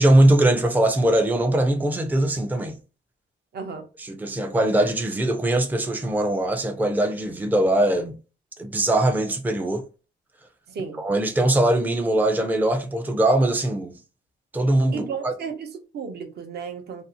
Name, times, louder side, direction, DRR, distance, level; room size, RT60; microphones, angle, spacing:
voice 1, 0.0-2.8 4.0-8.2 8.6-9.8 11.0-13.9 14.5-15.3, right 1 dB, 10° right, 0.4 m, -21 dB
voice 2, 3.5-3.9 10.7-11.0 14.9-17.0, right 6 dB, 55° right, 0.7 m, -34 dB
2.6 x 2.0 x 2.7 m
cardioid pair, 90°, 20 cm